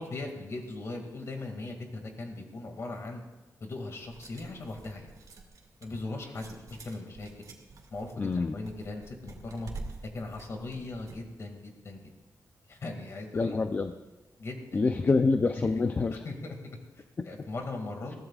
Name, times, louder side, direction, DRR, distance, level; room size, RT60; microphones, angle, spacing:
voice 1, 0.0-3.2 3.6-5.1 5.8-7.5 7.9-9.7 10.1-12.0 12.7-13.6 14.4-14.8 16.2-16.6 17.0-18.1, left 2 dB, 50° left, 3 dB, 2.2 m, -39 dB
sound 1, 4.0-11.2, right 3 dB, 65° right, 2.1 m, -48 dB
voice 2, 8.2-8.6 13.3-13.9 14.7-16.2 17.2-17.3, left 4 dB, 30° left, 7 dB, 0.5 m, -26 dB
21.5 x 15.5 x 2.4 m, 1.1 s
wide cardioid pair, 160°, 6 cm